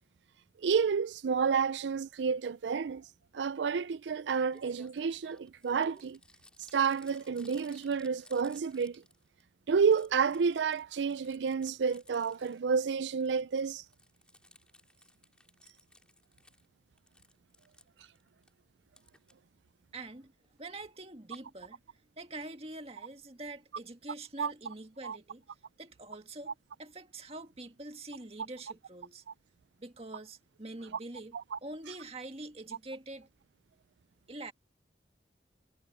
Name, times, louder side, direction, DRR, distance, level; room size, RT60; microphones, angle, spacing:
voice 1, 0.6-3.1 3.3-6.2 6.7-9.0 9.7-13.8 24.4-24.5 25.0-25.2 31.3-31.6, right 6 dB, 85° right, 0.4 m, -30 dB
Crumpling crinkling, 4.2-4.3 4.5-9.4 9.7-12.7 13.0-16.7 17.0-18.5 19.0-19.3 20.4-20.8 21.3-21.4 21.6-21.7 22.0-22.1, left 1 dB, 5° left, 2.8 m, -60 dB
voice 2, 19.9-20.3 20.6-21.8 22.2-25.4 25.8-29.2 29.8-31.4 31.6-33.3 34.3-34.5, right 2 dB, 35° right, 1.9 m, -45 dB
head